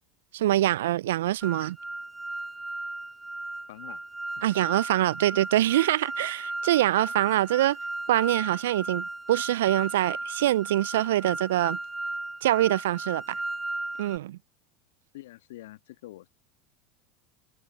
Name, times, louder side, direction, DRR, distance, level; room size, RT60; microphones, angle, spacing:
voice 1, 0.3-1.8 4.4-7.8 8.1-11.8 12.4-13.4 14.0-14.4, right 14 dB, 75° right, 0.3 m, -24 dB
sound 1, 1.4-14.2, right 2 dB, 10° right, 0.6 m, -36 dB
voice 2, 3.7-4.0 15.1-16.3, left 16 dB, 70° left, 1.5 m, -45 dB
hypercardioid pair, 85°, 0 cm